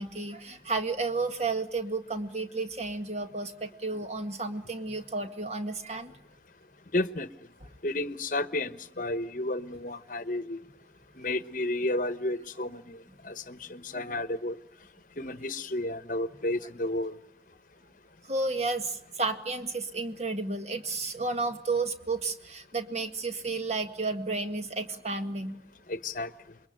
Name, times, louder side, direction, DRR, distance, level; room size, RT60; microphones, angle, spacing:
voice 1, 0.0-6.1 13.9-14.0 18.2-25.6, right 3 dB, 35° right, 1.8 m, -32 dB
voice 2, 6.9-7.3 7.8-10.6 11.2-13.0 13.2-14.6 15.2-17.2 25.9-26.3, left 1 dB, 45° left, 1.1 m, -32 dB
27.5 x 22.5 x 8.9 m
head